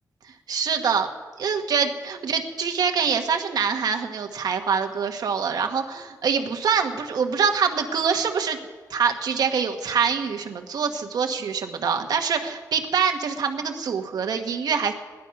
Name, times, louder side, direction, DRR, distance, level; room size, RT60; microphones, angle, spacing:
voice 1, 0.5-1.1 1.4-8.6 8.9-14.9, right 6 dB, 85° right, 5 dB, 1.2 m, -25 dB
17.5 x 11.0 x 5.8 m, 1.4 s
wide cardioid pair, 160°, 7 cm